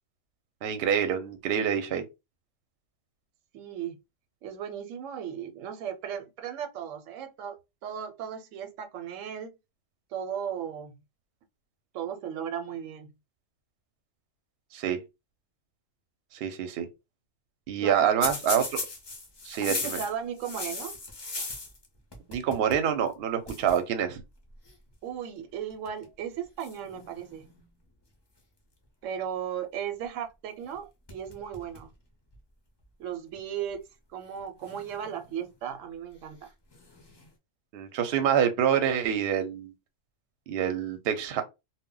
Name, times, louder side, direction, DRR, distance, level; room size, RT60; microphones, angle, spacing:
voice 1, 0.6-2.0 14.7-15.0 16.4-16.9 17.7-18.8 19.4-20.0 22.3-24.2 37.7-39.7 40.5-41.4, right 8 dB, 65° right, 0.7 m, -26 dB
voice 2, 3.5-4.0 4.4-9.5 10.1-10.9 11.9-13.1 17.8-18.3 19.6-21.0 25.0-27.5 29.0-31.9 33.0-33.8 34.1-36.5, right 8 dB, 85° right, 0.9 m, -36 dB
sound 1, 18.2-21.9 22.1-22.9 23.1-23.2 23.5-23.8 24.7-24.9 25.7-26.1 26.6-27.6 30.6-30.8 31.1-31.9 32.3-32.4 33.3-33.4 34.6-35.5 36.7-37.3, left 3 dB, 35° left, 0.4 m, -37 dB
2.1 x 2.1 x 3.7 m
omnidirectional pair, 1.3 m